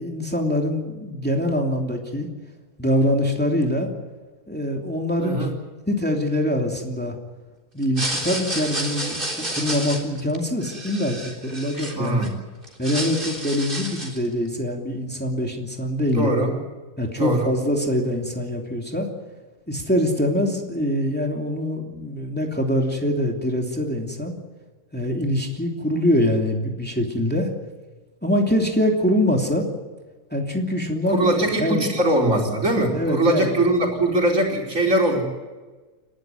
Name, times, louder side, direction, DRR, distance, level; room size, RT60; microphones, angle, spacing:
voice 1, 0.0-2.3 2.8-3.9 4.5-5.4 5.9-7.2 7.7-11.2 11.4-12.1 12.8-16.3 17.0-19.1 19.7-24.3 24.9-27.5 28.2-29.7 30.3-31.3 31.6-31.8 32.9-33.5, left 1 dB, 5° left, 1 dB, 2.9 m, -24 dB
voice 2, 5.2-5.5 11.9-12.3 16.1-16.5 17.2-17.5 31.1-35.2, right 1 dB, 65° right, 0 dB, 5.0 m, -21 dB
sound 1, 7.8-12.3 12.6-14.3, right 1 dB, 40° right, 3.9 m, -30 dB
29.0 x 13.0 x 9.5 m, 1.3 s
omnidirectional pair, 1.4 m